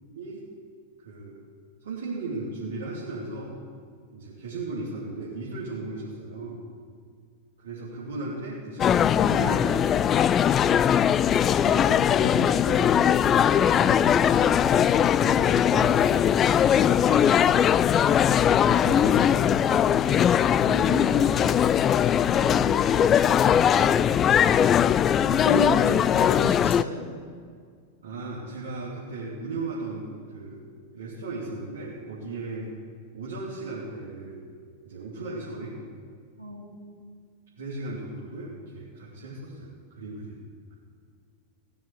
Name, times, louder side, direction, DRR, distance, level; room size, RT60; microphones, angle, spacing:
voice 1, 1.0-1.4 1.8-3.5 4.1-6.6 7.6-10.1 11.4-13.3 13.6-16.0 16.5-17.3 18.4-21.5 25.9-26.0 28.0-30.6 30.9-32.7 33.1-34.4 34.8-35.8 37.6-40.4, right 2 dB, 65° right, -7 dB, 2.7 m, -36 dB
sound 1, 8.8-26.8, left 9 dB, 25° left, 0.3 m, -20 dB
voice 2, 25.2-27.0 36.4-36.9, equal, 85° right, -3 dB, 3.1 m, -33 dB
17.0 x 7.2 x 8.1 m, 2.1 s
figure-of-eight pair, 90°, 0 cm